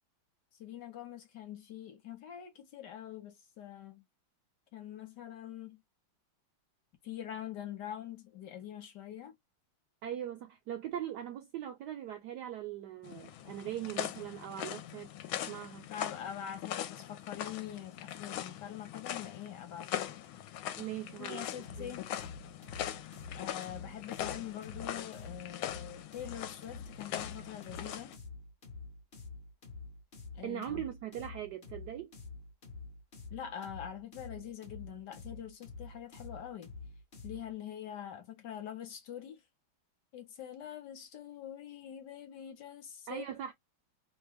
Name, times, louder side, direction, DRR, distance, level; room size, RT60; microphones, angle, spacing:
voice 1, 0.5-4.0 4.7-5.8 7.0-9.3 15.9-20.3 21.2-22.1 23.3-28.1 30.3-30.8 33.3-36.7 37.2-39.4 40.1-43.3, left 10 dB, 65° left, 1.3 m, -44 dB
voice 2, 10.0-15.1 15.5-15.9 20.8-22.0 30.4-32.1 43.1-43.5, right 11 dB, 75° right, 0.9 m, -40 dB
sound 1, 13.0-28.2, left 11 dB, 80° left, 1.4 m, -41 dB
sound 2, 21.6-37.5, left 3 dB, 45° left, 0.8 m, -48 dB
3.3 x 2.2 x 3.3 m
omnidirectional pair, 2.3 m